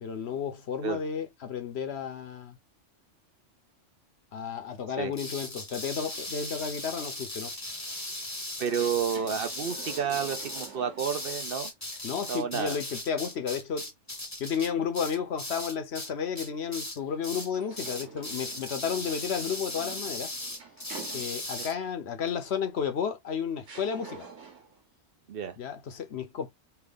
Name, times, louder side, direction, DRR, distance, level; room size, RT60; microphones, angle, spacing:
voice 1, 0.0-2.6 4.3-7.5 12.0-13.9 14.4-20.3 21.1-24.3 25.6-26.5, left 7 dB, 65° left, 1.0 m, -32 dB
sound 1, 5.1-16.1 16.4-17.0 17.2-17.5 17.8-21.7, left 1 dB, 15° left, 0.9 m, -38 dB
voice 2, 8.6-11.7 12.3-12.8 25.3-25.6, right 7 dB, 55° right, 0.9 m, -30 dB
sound 2, 8.6-11.5 11.9-12.0 17.4-21.7 22.8-22.9 23.6-24.8, right 5 dB, 85° right, 1.4 m, -48 dB
3.4 x 2.4 x 3.5 m
omnidirectional pair, 1.2 m